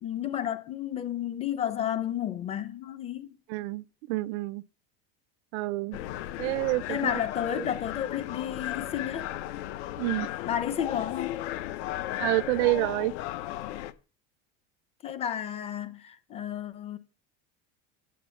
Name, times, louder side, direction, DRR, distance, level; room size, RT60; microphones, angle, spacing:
voice 1, 0.0-3.4 6.9-9.3 10.4-11.4 15.0-17.0, left 10 dB, 20° left, 0.5 m, -32 dB
voice 2, 3.5-4.6 5.5-6.0 6.4-7.2 7.5-7.7 10.0-10.3 12.2-13.1, right 20 dB, 90° right, 0.5 m, -28 dB
sound 1, 5.9-13.9, left 14 dB, 80° left, 0.9 m, -35 dB
8.5 x 7.6 x 6.9 m
cardioid pair, 180°, 33 cm